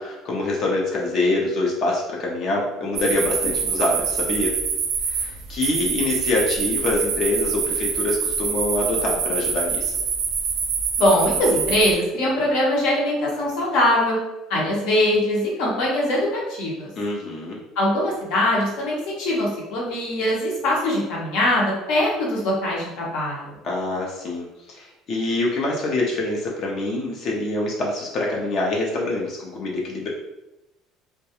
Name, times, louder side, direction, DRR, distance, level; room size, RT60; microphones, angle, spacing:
voice 1, 0.0-4.5 5.1-9.9 17.0-17.6 23.6-30.1, left 2 dB, 45° left, -2 dB, 0.5 m, -25 dB
sound 1, 3.0-11.9, right 6 dB, 65° right, 0.4 m, -25 dB
voice 2, 11.0-14.2 14.5-16.9 17.8-23.6, left 1 dB, 75° left, -4 dB, 0.9 m, -22 dB
2.3 x 2.1 x 2.8 m, 0.94 s
cardioid pair, 135°, 0 cm